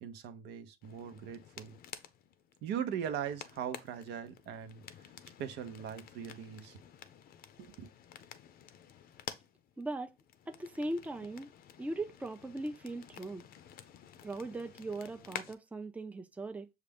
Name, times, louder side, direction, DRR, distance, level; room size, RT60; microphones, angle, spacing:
voice 1, 0.0-1.8 2.6-4.8 5.4-6.8 7.6-7.9, right 8 dB, 80° right, 0.7 m, -40 dB
sound 1, 0.8-15.5, left 9 dB, 60° left, 0.5 m, -51 dB
voice 2, 9.8-10.1 10.5-11.5 11.8-13.5 14.2-16.7, right 2 dB, 10° right, 0.4 m, -39 dB
6.4 x 2.4 x 3.4 m
cardioid pair, 110°, 17 cm